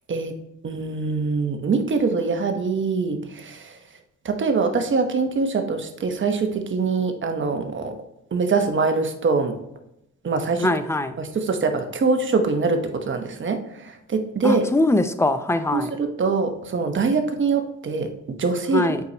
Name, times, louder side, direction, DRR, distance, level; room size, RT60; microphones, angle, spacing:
voice 1, 0.6-3.8 4.2-8.0 8.3-9.5 10.2-10.7 11.2-14.7 15.7-18.9, right 4 dB, 40° right, 5 dB, 1.1 m, -23 dB
voice 2, 10.6-11.2 14.4-15.9 18.7-19.0, left 2 dB, 10° left, 10 dB, 0.6 m, -21 dB
8.1 x 4.7 x 3.0 m, 0.83 s
cardioid pair, 90°, 30 cm